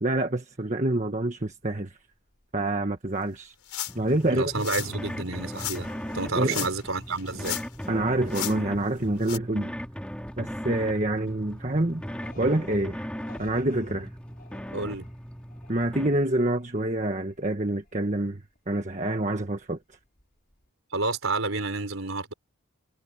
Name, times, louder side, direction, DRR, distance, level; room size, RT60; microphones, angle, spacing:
voice 1, 0.0-2.0 2.5-3.5 3.9-4.6 6.4-6.7 7.9-9.7 10.4-12.0 12.3-13.1 13.4-14.1 15.7-20.0, right 1 dB, 35° right, 1.4 m, -27 dB
sound 1, 1.4-1.6 1.8-3.8 4.2-20.2 20.5-20.7, left 1 dB, 40° left, 5.4 m, -51 dB
sound 2, 3.7-4.1 4.6-4.9 5.5-5.8 6.4-6.9 7.2-7.8 8.3-8.5 9.2-9.4, left 13 dB, 85° left, 4.7 m, -33 dB
sound 3, 3.9-16.1, equal, 5° left, 4.0 m, -38 dB
voice 2, 4.3-5.9 6.1-7.6 14.7-15.0 20.9-22.3, right 3 dB, 65° right, 4.1 m, -30 dB
head